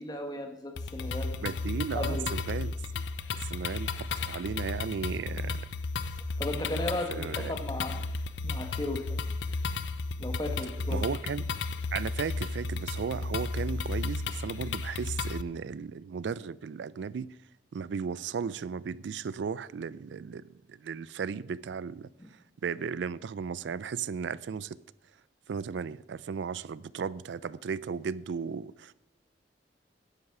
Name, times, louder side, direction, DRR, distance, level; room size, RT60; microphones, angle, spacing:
voice 1, 0.0-1.4 1.7-2.3 5.4-5.6 6.4-8.1 8.4-9.2 10.2-11.0 22.2-22.3, left 1 dB, 20° left, 1.4 m, -36 dB
sound 1, 0.8-15.4, left 3 dB, 85° left, 0.6 m, -33 dB
voice 2, 1.4-2.7 3.4-3.9 4.2-5.7 7.1-7.5 10.9-11.4 11.9-17.3 17.7-20.4 20.7-22.1 22.6-24.8 25.5-28.9, right 6 dB, 80° right, 0.4 m, -35 dB
11.0 x 8.0 x 5.9 m
head